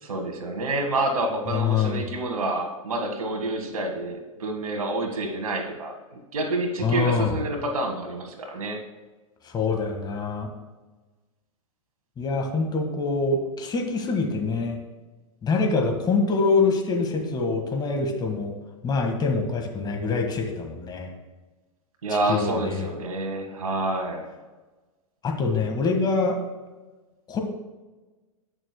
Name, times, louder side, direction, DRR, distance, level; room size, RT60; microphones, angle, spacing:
voice 1, 0.0-8.8 22.0-24.3, right 2 dB, 80° right, 4 dB, 1.7 m, -28 dB
voice 2, 1.5-2.1 6.8-7.3 9.4-10.5 12.2-14.8 15.4-18.5 18.8-21.1 22.3-22.8 25.2-26.4 27.3-27.4, left 4 dB, 25° left, 2 dB, 1.7 m, -25 dB
16.5 x 6.4 x 2.2 m, 1.2 s
hypercardioid pair, 105°, 18 cm